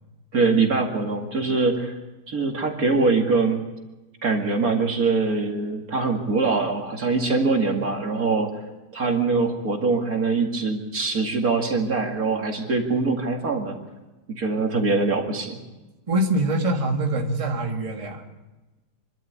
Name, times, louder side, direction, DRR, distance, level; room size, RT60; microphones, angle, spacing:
voice 1, 0.3-1.9 2.3-3.6 4.2-8.5 8.9-13.8 14.3-15.6, right 4 dB, 55° right, 2 dB, 2.6 m, -23 dB
voice 2, 16.1-18.2, right 1 dB, 20° right, 1 dB, 1.8 m, -24 dB
26.5 x 12.0 x 8.4 m, 1.1 s
omnidirectional pair, 1.9 m